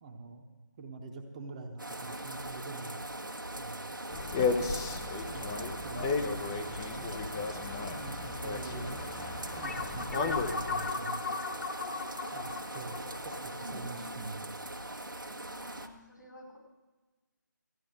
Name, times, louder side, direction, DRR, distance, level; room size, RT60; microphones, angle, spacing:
voice 1, 0.0-0.4 0.8-3.1 3.5-4.0 4.5-7.3 7.9-9.0 9.5-11.2 12.3-14.5, right 3 dB, 20° right, 2 dB, 1.0 m, -45 dB
sound 1, 1.8-15.9, right 1 dB, 85° right, 1.3 m, -41 dB
sound 2, 4.1-10.9, left 4 dB, 10° left, 0.6 m, -34 dB
voice 2, 7.7-8.1 13.6-14.2 15.4-16.6, left 1 dB, 70° left, 0 dB, 5.4 m, -49 dB
sound 3, 9.6-14.5, left 4 dB, 50° left, 0.8 m, -38 dB
14.0 x 9.9 x 6.5 m, 1.2 s
figure-of-eight pair, 155°, 11 cm